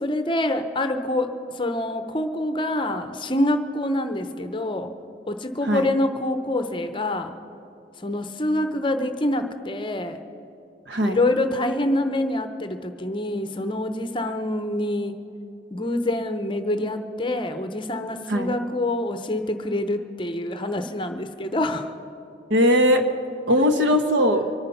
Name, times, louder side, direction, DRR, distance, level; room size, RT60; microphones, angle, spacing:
voice 1, 0.0-4.9 5.3-7.3 8.0-10.2 11.0-15.2 15.7-21.9, left 1 dB, 25° left, 8 dB, 0.7 m, -26 dB
voice 2, 10.9-11.2 18.3-18.5 22.5-23.0 23.5-24.4, equal, 75° right, 6 dB, 1.3 m, -19 dB
24.5 x 9.5 x 5.8 m, 2.8 s
head